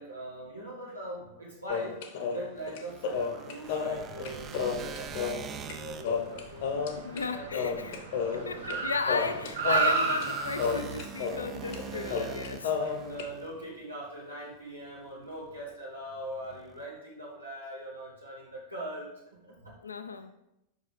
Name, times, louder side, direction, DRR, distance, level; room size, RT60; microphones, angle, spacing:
voice 1, 0.0-6.7 7.1-8.9 9.3-9.5 11.8-12.4 12.8-19.8, right 1 dB, 90° right, 1.3 m, -42 dB
sound 1, 1.7-5.8 6.0-7.2 7.5-8.8 9.1-11.5 11.7-11.8 12.1-13.3, left 6 dB, 50° left, 0.9 m, -32 dB
sound 2, 2.6-7.3 8.2-13.9 15.3-15.7 16.1-16.8, right 7 dB, 30° right, 0.6 m, -45 dB
Car, 3.8-13.3, right 4 dB, 60° right, 1.1 m, -35 dB
voice 2, 6.8-8.0 8.4-12.7 19.8-20.3, left 4 dB, 75° left, 0.5 m, -35 dB
5.7 x 5.0 x 5.4 m
figure-of-eight pair, 90°, 0 cm